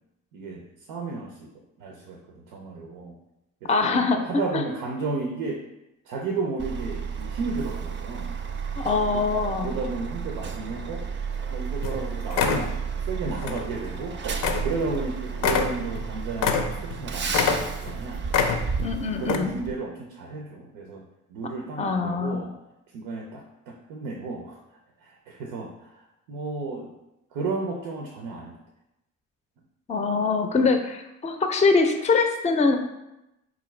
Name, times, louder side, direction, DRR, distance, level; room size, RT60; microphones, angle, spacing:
voice 1, 0.3-1.5 1.8-3.2 3.6-5.6 6.1-8.4 9.1-11.1 11.5-12.7 13.1-14.2 14.6-18.2 19.2-21.0 21.3-22.5 22.9-24.6 25.0-26.9 27.3-28.6, right 3 dB, 85° right, 1 dB, 0.5 m, -33 dB
voice 2, 3.7-4.2 4.5-4.6 8.8-9.7 18.8-19.5 21.8-22.4 29.9-32.8, left 4 dB, 20° left, 6 dB, 0.4 m, -23 dB
Truck, 6.6-19.7, right 6 dB, 35° right, 0.4 m, -32 dB
sound 1, 11.4-11.5 11.8-12.0 12.3-12.7 13.4-13.6 13.9-14.0 14.4-14.7 14.9-15.0 15.4-17.0 17.3-18.0 18.3-18.9 19.2-19.4, left 6 dB, 70° left, 0.5 m, -25 dB
3.9 x 2.4 x 3.1 m, 0.91 s
supercardioid pair, 60°, 33 cm